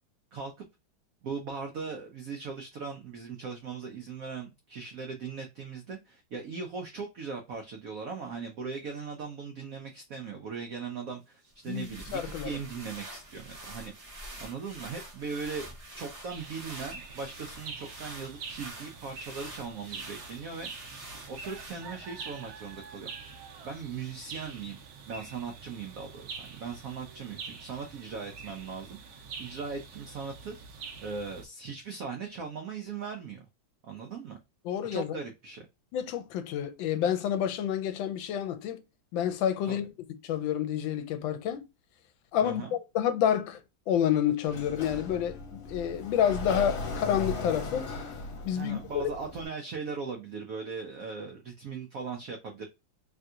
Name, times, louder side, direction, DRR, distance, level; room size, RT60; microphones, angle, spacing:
voice 1, 0.3-0.7 1.2-24.8 25.1-30.5 31.0-33.4 33.8-34.4 34.9-35.7 39.7-39.8 42.4-42.8 48.5-52.7, right 5 dB, 85° right, 0.7 m, -39 dB
sound 1, 11.4-22.1, right 1 dB, 45° right, 0.5 m, -46 dB
voice 2, 11.7-12.5 34.6-35.2 35.9-38.8 39.1-39.9 40.2-41.7 42.3-43.6 43.9-47.9 48.4-49.1, left 9 dB, 80° left, 1.3 m, -29 dB
sound 2, 16.3-31.5, right 5 dB, 65° right, 1.0 m, -45 dB
Sliding door, 44.5-49.5, left 3 dB, 60° left, 1.3 m, -37 dB
3.3 x 2.7 x 2.3 m
omnidirectional pair, 2.1 m